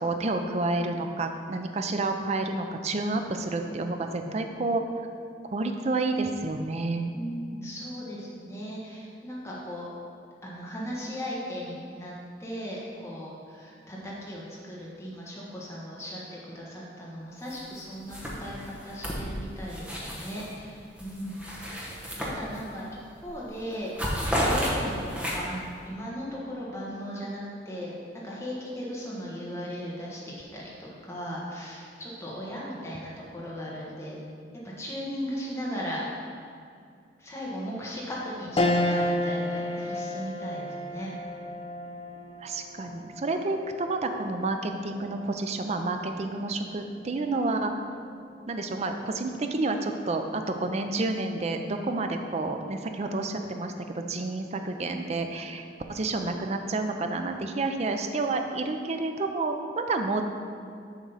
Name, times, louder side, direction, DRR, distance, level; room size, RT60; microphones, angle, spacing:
voice 1, 0.0-4.8 5.5-7.1 42.4-47.7 48.5-60.3, right 2 dB, 35° right, 5 dB, 0.4 m, -29 dB
voice 2, 7.1-9.9 10.4-12.1 12.4-21.8 22.2-23.9 24.4-25.6 25.8-27.9 28.2-34.2 34.8-36.0 37.2-41.1, equal, 15° left, -6 dB, 1.2 m, -37 dB
sound 1, 17.5-17.8 18.1-20.5 20.9-22.8 23.2-23.4 23.7-25.7, equal, 5° right, 0.9 m, -32 dB
sound 2, 38.6-48.2 48.6-48.7 50.1-50.5, left 1 dB, 30° left, 0.5 m, -33 dB
7.2 x 3.7 x 5.4 m, 2.3 s
head